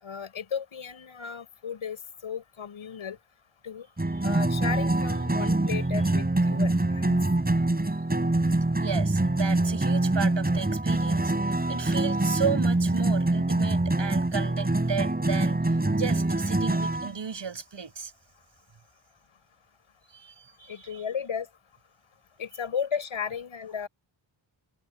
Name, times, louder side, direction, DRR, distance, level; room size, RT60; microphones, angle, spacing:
voice 1, 0.0-3.2 3.6-3.9 4.2-7.2 20.7-21.5 22.4-23.9, left 7 dB, 80° left, 5.8 m, -34 dB
sound 1, 4.0-17.1, right 2 dB, 20° right, 5.3 m, -25 dB
voice 2, 8.8-18.1 20.1-21.0, right 6 dB, 60° right, 6.8 m, -34 dB
wide cardioid pair, 110°, 48 cm